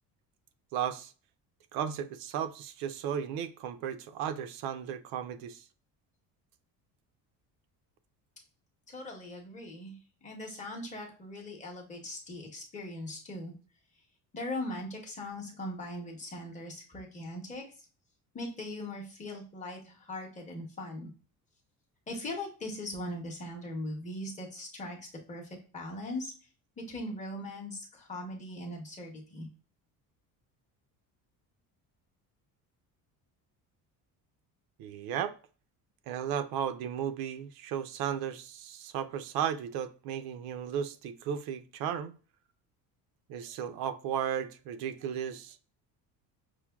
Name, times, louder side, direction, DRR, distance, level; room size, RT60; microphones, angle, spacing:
voice 1, 0.7-1.1 1.7-5.7 34.8-35.4 36.1-42.2 43.3-45.7, right 9 dB, 75° right, 0.5 m, -35 dB
voice 2, 8.9-13.5 14.3-17.6 18.3-21.1 22.1-26.3 26.8-29.5, left 1 dB, 20° left, 0.7 m, -40 dB
5.9 x 2.1 x 2.2 m
cardioid pair, 170°, 36 cm